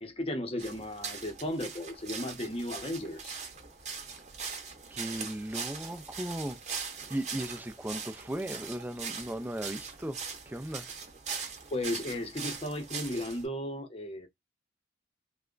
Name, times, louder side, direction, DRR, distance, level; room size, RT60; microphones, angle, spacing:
voice 1, 0.0-3.4 11.7-14.3, left 1 dB, 30° left, 0.7 m, -35 dB
sound 1, 0.6-13.5, right 5 dB, 40° right, 0.7 m, -41 dB
voice 2, 4.9-6.6 7.1-10.2 10.5-10.9, right 1 dB, 10° right, 0.3 m, -36 dB
3.3 x 2.1 x 3.7 m
head